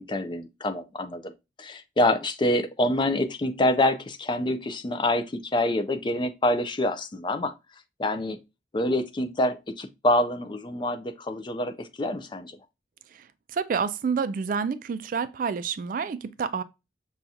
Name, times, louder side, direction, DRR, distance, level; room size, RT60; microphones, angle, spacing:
voice 1, 0.0-1.3 1.6-7.5 8.0-8.4 8.7-12.6, left 1 dB, 25° left, 0.4 m, -26 dB
voice 2, 13.1-16.6, right 6 dB, 50° right, 0.3 m, -29 dB
5.6 x 2.4 x 2.6 m
head